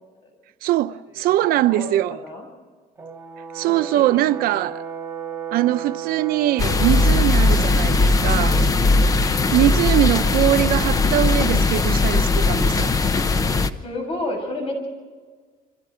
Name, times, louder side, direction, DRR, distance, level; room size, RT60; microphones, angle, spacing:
voice 1, 0.6-2.2 3.5-4.8 5.5-8.6 9.5-12.9, right 14 dB, 85° right, 0.8 m, -21 dB
voice 2, 1.7-2.5 3.6-4.0 13.8-14.9, left 1 dB, 40° left, 7.1 m, -31 dB
Brass instrument, 3.0-7.2, right 8 dB, 15° right, 2.2 m, -33 dB
sound 1, 6.6-13.7, left 3 dB, 25° left, 0.9 m, -19 dB
29.0 x 25.5 x 5.1 m
cardioid pair, 170°, 15 cm